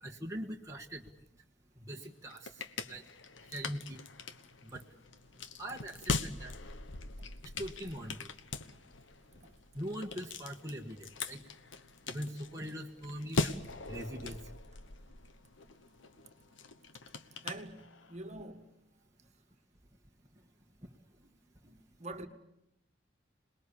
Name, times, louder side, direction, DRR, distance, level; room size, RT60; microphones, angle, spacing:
voice 1, 0.0-1.0 1.8-2.5 2.9-3.0 3.5-4.0 4.6-4.8 5.6-6.5 7.6-8.3 9.7-11.4 12.1-13.6 13.9-14.4, equal, 15° right, 1.6 m, -41 dB
sound 1, 2.0-18.3, left 3 dB, 75° left, 1.3 m, -41 dB
voice 2, 17.4-18.7 21.6-22.3, right 2 dB, 35° right, 1.8 m, -45 dB
27.0 x 20.5 x 8.4 m
head